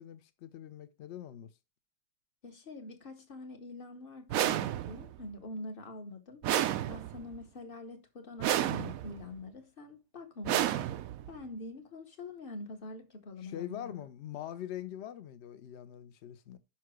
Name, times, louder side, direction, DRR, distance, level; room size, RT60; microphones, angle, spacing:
voice 1, 0.0-1.5 13.4-16.6, left 11 dB, 55° left, 0.8 m, -43 dB
voice 2, 2.4-6.4 6.9-10.9 11.3-14.0, left 2 dB, 35° left, 1.1 m, -45 dB
sound 1, 4.3-5.2 6.4-7.4 8.4-9.2 10.4-11.4, right 12 dB, 70° right, 0.8 m, -31 dB
5.9 x 5.6 x 6.3 m
omnidirectional pair, 1.8 m